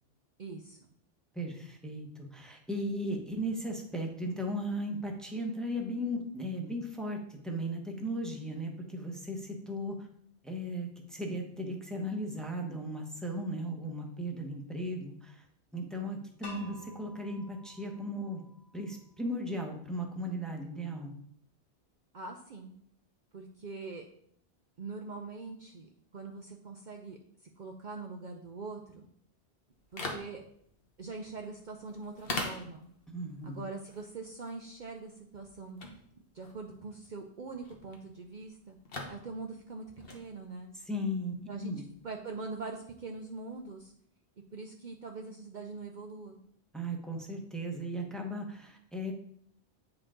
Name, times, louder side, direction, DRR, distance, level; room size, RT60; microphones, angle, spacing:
voice 1, 0.4-0.8 22.1-22.8 23.3-24.0 24.8-27.2 27.6-29.1 29.9-30.4 31.0-32.9 33.4-35.8 36.3-38.8 39.1-39.8 40.1-40.7 41.5-43.9 44.5-46.4, right 3 dB, 50° right, 2 dB, 0.7 m, -43 dB
voice 2, 1.3-10.1 10.4-15.4 15.7-18.4 18.7-21.1 33.1-33.6 40.8-41.3 41.6-41.8 46.7-49.1, equal, ahead, 0 dB, 1.0 m, -36 dB
sound 1, 16.4-19.3, left 1 dB, 25° left, 1.1 m, -51 dB
sound 2, 29.7-43.9, left 2 dB, 60° left, 1.3 m, -45 dB
8.6 x 4.8 x 3.7 m, 0.66 s
omnidirectional pair, 1.1 m